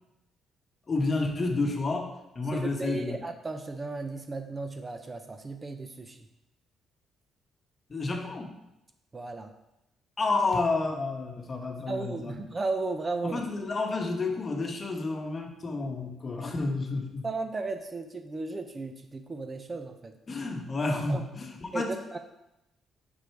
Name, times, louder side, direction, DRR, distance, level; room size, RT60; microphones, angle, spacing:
voice 1, 0.9-3.2 7.9-8.5 10.2-12.5 13.2-17.3 20.3-21.9, left 3 dB, 35° left, 3 dB, 1.1 m, -30 dB
voice 2, 2.5-6.2 9.1-9.5 11.9-13.4 17.2-20.1 21.1-21.2 21.7-21.8 22.1-22.2, right 3 dB, 30° right, 7 dB, 0.6 m, -35 dB
5.3 x 4.9 x 4.6 m, 0.90 s
cardioid pair, 90°, 0 cm